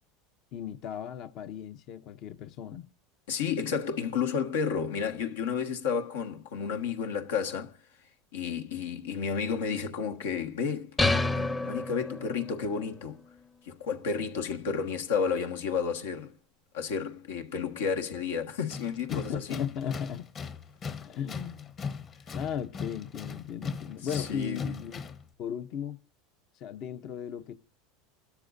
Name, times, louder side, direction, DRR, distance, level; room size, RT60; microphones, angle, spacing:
voice 1, 0.5-2.8 19.1-20.3 21.0-21.7 22.3-25.0 25.4-26.0 26.5-27.5, left 8 dB, 50° left, 0.7 m, -36 dB
voice 2, 3.3-7.7 8.3-13.2 13.6-16.3 16.7-19.6 24.1-24.8, left 6 dB, 85° left, 1.4 m, -31 dB
sound 1, 11.0-12.6, left 2 dB, 15° left, 0.7 m, -28 dB
Tools, 18.7-25.3, left 5 dB, 30° left, 1.1 m, -39 dB
27.5 x 13.0 x 2.6 m
supercardioid pair, 125°, 0 cm